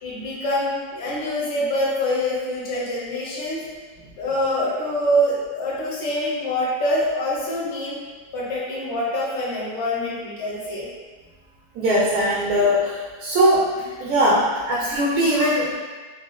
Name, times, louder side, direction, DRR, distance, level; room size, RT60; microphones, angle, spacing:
voice 1, 0.0-3.6 4.2-8.0 8.3-10.9, equal, 55° left, -6 dB, 1.0 m, -25 dB
voice 2, 11.7-13.7 14.0-15.7, equal, 70° right, -6 dB, 1.0 m, -20 dB
4.1 x 2.3 x 2.3 m, 1.4 s
omnidirectional pair, 1.7 m